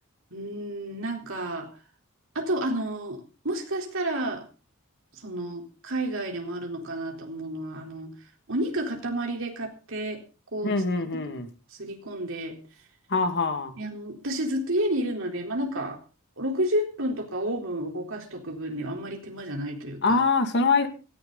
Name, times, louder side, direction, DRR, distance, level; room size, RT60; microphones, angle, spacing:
voice 1, 0.3-1.7 2.3-4.5 5.2-8.1 8.5-10.2 10.5-10.8 11.8-12.6 13.8-16.0 16.4-20.2, right 1 dB, 65° right, 2 dB, 4.0 m, -30 dB
voice 2, 10.6-11.5 13.1-13.8 20.0-20.9, left 4 dB, 55° left, 7 dB, 2.2 m, -24 dB
17.5 x 14.5 x 4.1 m, 0.35 s
head